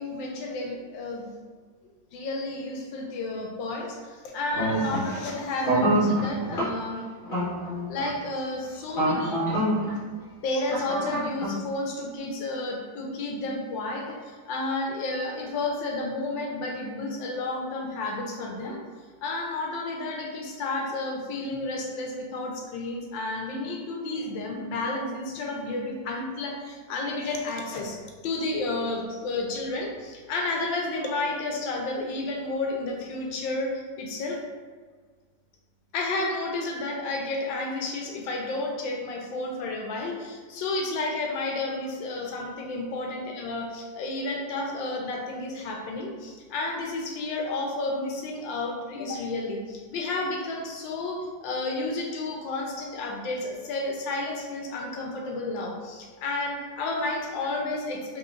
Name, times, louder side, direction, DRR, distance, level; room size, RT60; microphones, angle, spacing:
voice 1, 0.0-1.3 2.1-7.0 7.9-9.4 10.4-18.8 19.2-28.0 28.2-34.4 35.9-58.2, left 2 dB, 85° left, 0 dB, 1.4 m, -31 dB
sound 1, 4.5-5.1 5.6-6.6 7.2-8.1 8.9-9.9 10.7-11.6, right 1 dB, 30° left, 1.1 m, -25 dB
3.8 x 3.6 x 2.4 m, 1.5 s
omnidirectional pair, 2.0 m